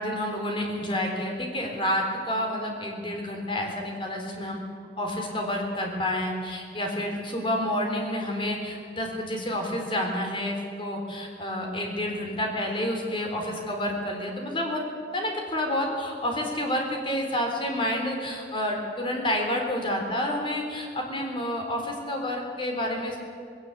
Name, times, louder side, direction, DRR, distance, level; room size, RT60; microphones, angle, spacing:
voice 1, 0.0-4.6 5.0-14.8 15.1-23.2, left 1 dB, 30° left, 2 dB, 3.8 m, -29 dB
19.5 x 17.5 x 8.5 m, 2.3 s
head